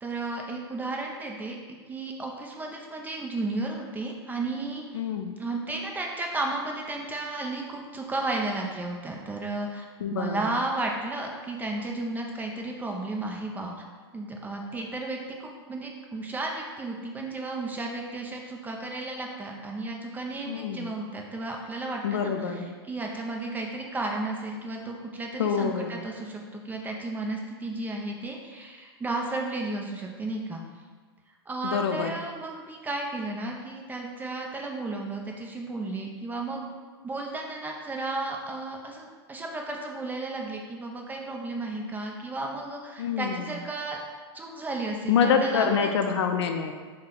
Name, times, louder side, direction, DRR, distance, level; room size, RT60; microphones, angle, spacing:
voice 1, 0.0-1.6 1.9-5.0 5.4-13.8 14.1-30.6 31.5-36.7 37.0-44.0 44.3-45.9, right 2 dB, 10° right, 0 dB, 0.4 m, -33 dB
voice 2, 4.9-5.3 10.0-10.6 20.5-20.9 22.0-22.7 25.4-25.9 31.6-32.1 43.0-43.5 45.1-46.7, left 6 dB, 85° left, 6 dB, 0.4 m, -26 dB
4.0 x 2.1 x 3.8 m, 1.5 s
hypercardioid pair, 125°, 14 cm